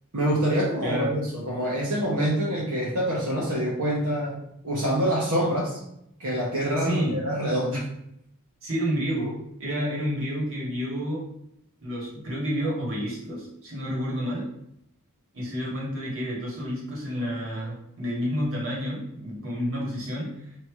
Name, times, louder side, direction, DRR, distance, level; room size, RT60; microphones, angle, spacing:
voice 1, 0.1-5.8 6.2-7.8, right 1 dB, 80° right, -6 dB, 1.0 m, -26 dB
voice 2, 0.8-1.2 6.8-7.2 8.6-11.2 11.8-14.5 15.3-20.5, equal, 60° right, -4 dB, 1.6 m, -30 dB
3.3 x 2.9 x 4.5 m, 0.77 s
head